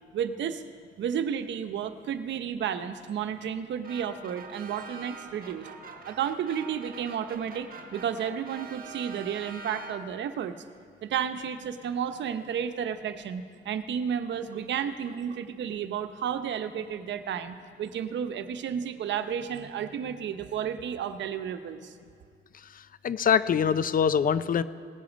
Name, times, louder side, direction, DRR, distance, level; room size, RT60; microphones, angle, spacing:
voice 1, 0.1-0.6 1.0-5.7 6.1-10.5 11.0-21.9, right 8 dB, 65° right, 10 dB, 0.9 m, -32 dB
sound 1, 3.8-10.4, right 3 dB, 45° right, 1.2 m, -45 dB
voice 2, 23.0-24.6, left 7 dB, 45° left, 15 dB, 0.6 m, -23 dB
18.5 x 8.5 x 5.2 m, 2.1 s
cardioid pair, 90°, 20 cm